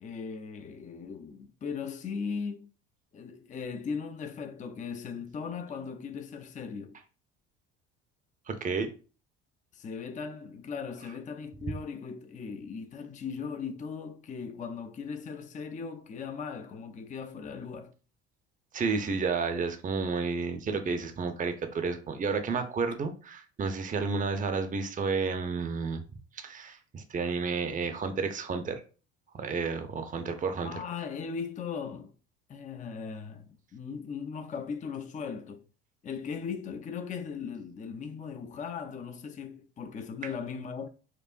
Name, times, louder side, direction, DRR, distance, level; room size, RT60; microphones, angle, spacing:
voice 1, 0.0-2.7 3.1-7.0 9.7-17.9 30.6-32.1 32.5-35.6 36.0-40.9, left 6 dB, 25° left, 0.5 m, -38 dB
voice 2, 8.5-8.9 18.7-26.0 26.3-28.8 29.3-30.8, right 4 dB, 25° right, 0.6 m, -31 dB
4.5 x 2.4 x 2.5 m
hypercardioid pair, 65°, 32 cm